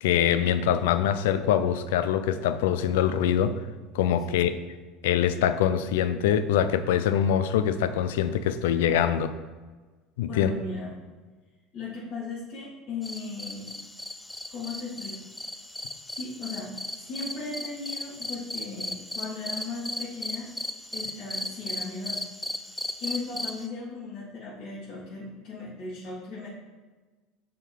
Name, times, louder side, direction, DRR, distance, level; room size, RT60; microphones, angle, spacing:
voice 1, 0.0-3.6 3.9-4.5 5.0-9.3 10.2-10.5, left 9 dB, 80° left, 12 dB, 0.4 m, -24 dB
voice 2, 10.3-10.9 11.7-13.7 14.5-15.2 16.1-20.5 20.9-22.2 22.7-26.5, left 3 dB, 45° left, -9 dB, 2.1 m, -37 dB
sound 1, 13.0-23.7, left 1 dB, 10° left, 0.5 m, -36 dB
6.8 x 3.8 x 4.6 m, 1.3 s
hypercardioid pair, 85°, 0 cm